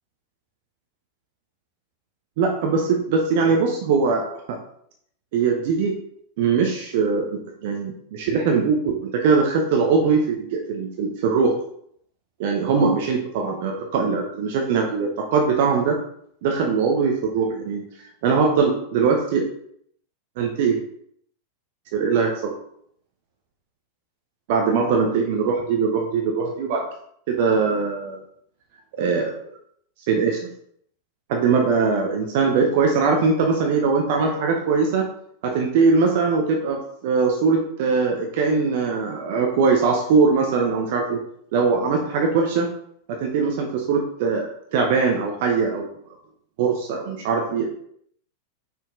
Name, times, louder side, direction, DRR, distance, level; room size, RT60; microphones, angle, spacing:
voice 1, 2.4-4.6 5.3-5.9 6.4-11.5 12.4-16.0 16.4-17.8 18.2-19.4 20.4-20.8 21.9-22.5 24.5-26.8 27.3-28.2 28.9-29.4 30.1-30.4 31.3-35.1 35.4-41.2 41.5-42.7 43.1-45.9 46.6-47.6, right 5 dB, 50° right, 1 dB, 0.9 m, -21 dB
6.0 x 4.3 x 3.9 m, 0.68 s
figure-of-eight pair, 90°, 0 cm